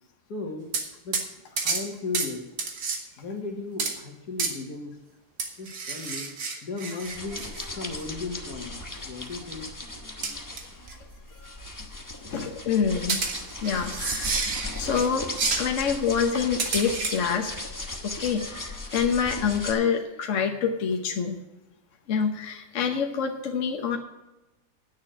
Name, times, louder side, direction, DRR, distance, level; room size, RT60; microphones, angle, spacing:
voice 1, 0.3-0.7 1.0-1.2 1.5-2.4 3.2-5.0 5.6-6.3 6.6-7.5 7.8-8.7 9.0-9.7, left 3 dB, 70° left, 3 dB, 2.1 m, -35 dB
sound 1, 0.7-0.9 1.1-1.3 1.6-1.9 2.1-2.3 2.6-3.0 3.8-4.0 4.4-4.6 5.4-7.7 8.0-8.1 10.2-10.6 10.9-11.0 13.1-15.1 15.4-15.7 16.6-17.2, right 4 dB, 80° right, 1.9 m, -29 dB
sound 2, 7.0-19.7, left 2 dB, 15° left, 0.8 m, -37 dB
voice 2, 12.2-13.2 13.6-14.5 14.7-17.5 18.0-21.4 22.1-24.0, left 6 dB, 55° left, 3 dB, 1.3 m, -27 dB
9.6 x 6.6 x 8.7 m, 1.0 s
omnidirectional pair, 1.7 m